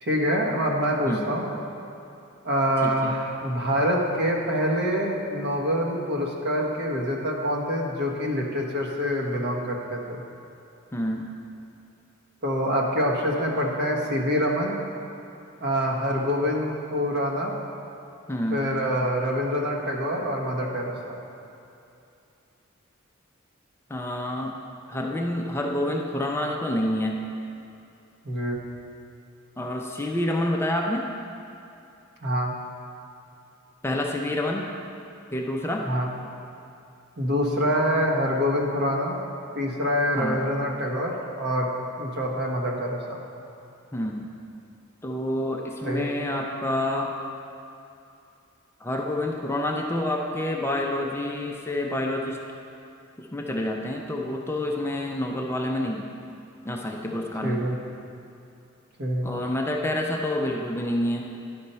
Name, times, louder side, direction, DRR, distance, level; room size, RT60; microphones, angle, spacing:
voice 1, 0.0-1.5 2.4-10.2 12.4-14.8 15.6-17.5 18.5-21.1 28.2-28.6 32.2-32.5 35.8-36.1 37.2-39.2 39.5-41.7 42.0-43.2 45.8-46.1 57.4-57.7 59.0-59.3, equal, 55° right, -1 dB, 1.2 m, -25 dB
voice 2, 2.8-3.2 10.9-11.3 18.3-18.6 23.9-24.5 24.9-27.2 29.6-31.1 33.8-34.7 35.3-35.9 40.1-40.4 43.9-44.3 45.0-47.1 48.8-52.4 53.2-56.1 56.6-57.6 59.2-61.3, left 1 dB, 10° left, 0 dB, 0.5 m, -28 dB
10.5 x 4.3 x 5.5 m, 2.7 s
head